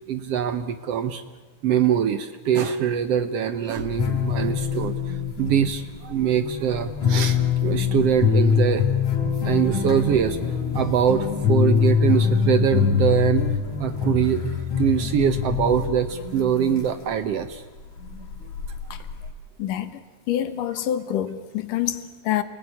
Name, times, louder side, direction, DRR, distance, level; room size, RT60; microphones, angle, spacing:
voice 1, 0.1-1.2 1.6-8.9 9.2-10.4 10.7-13.5 13.8-17.6, right 8 dB, 65° right, 11 dB, 1.7 m, -23 dB
sound 1, 3.8-17.3 17.9-19.3, left 7 dB, 65° left, 5.0 m, -24 dB
voice 2, 19.6-20.0 20.3-22.4, left 11 dB, 90° left, 11 dB, 3.0 m, -26 dB
28.5 x 20.0 x 9.7 m, 1.3 s
omnidirectional pair, 3.6 m